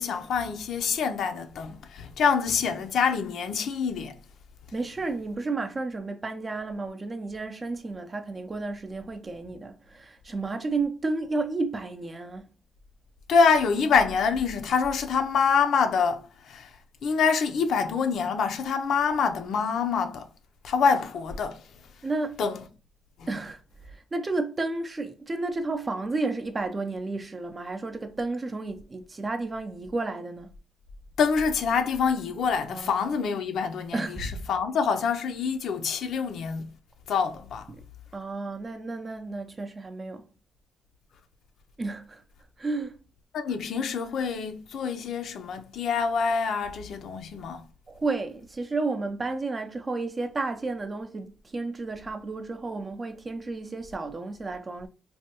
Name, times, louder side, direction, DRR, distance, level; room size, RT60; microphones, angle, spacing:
voice 1, 0.0-4.2 13.3-16.8 17.0-20.3 20.6-21.6 22.4-22.7 23.2-23.4 31.2-36.7 37.1-37.7 43.3-47.6, left 5 dB, 70° left, 0.5 m, -26 dB
voice 2, 4.7-12.5 22.0-22.4 23.3-23.6 23.9-30.5 32.7-33.0 33.9-34.4 37.7-37.8 38.1-40.2 41.8-42.2 42.6-43.0 47.9-54.9, right 3 dB, 30° right, 0.5 m, -32 dB
3.2 x 2.2 x 2.9 m
cardioid pair, 90°, 0 cm